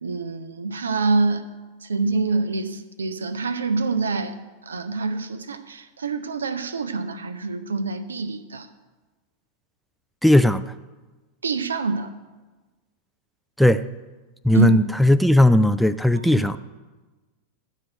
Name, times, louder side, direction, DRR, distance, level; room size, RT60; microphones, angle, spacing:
voice 1, 0.0-1.5 1.8-4.4 4.7-8.7 11.4-12.1 14.5-14.9 16.2-16.6, right 3 dB, 70° right, 11 dB, 0.6 m, -26 dB
voice 2, 10.2-10.6 13.6-13.8 14.4-16.6, left 1 dB, ahead, 12 dB, 0.3 m, -17 dB
12.5 x 4.5 x 7.8 m, 1.2 s
figure-of-eight pair, 90°, 0 cm